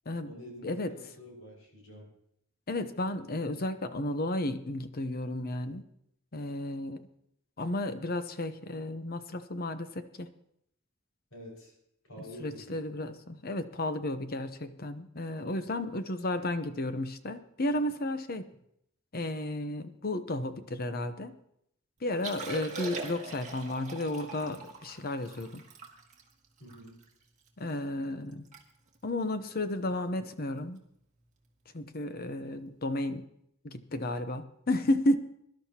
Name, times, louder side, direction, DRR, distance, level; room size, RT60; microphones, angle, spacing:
voice 1, 0.2-2.1 11.3-11.7 12.0-12.8 26.6-27.0, equal, 80° left, -2 dB, 5.5 m, -48 dB
voice 2, 2.7-5.8 6.3-7.0 7.6-10.3 12.4-18.5 19.1-21.3 22.0-25.6 27.6-28.4 29.0-30.8 31.7-33.2 33.6-35.2, left 1 dB, 45° left, 10 dB, 0.8 m, -33 dB
Liquid, 22.1-27.5 27.9-28.0 28.3-28.6 28.9-29.1 29.7-30.0 31.4-31.5, right 4 dB, 35° right, 1.8 m, -42 dB
23.0 x 11.5 x 2.9 m, 0.74 s
head